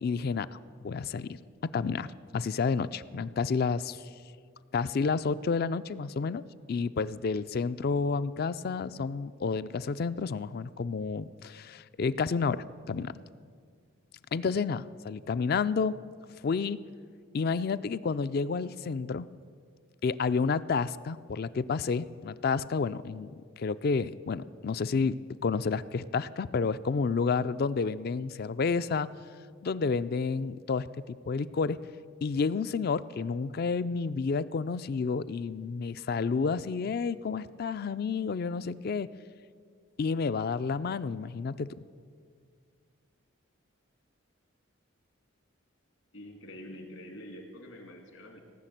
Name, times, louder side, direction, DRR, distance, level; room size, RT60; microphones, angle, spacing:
voice 1, 0.0-4.0 4.7-6.4 6.7-13.1 14.3-16.0 16.4-16.8 17.3-19.3 20.0-25.2 25.4-29.1 29.6-31.8 32.2-39.1 40.0-41.7, left 5 dB, 45° left, 15 dB, 0.3 m, -30 dB
voice 2, 46.1-48.4, equal, 75° left, 4 dB, 2.4 m, -46 dB
17.5 x 6.6 x 9.1 m, 2.1 s
head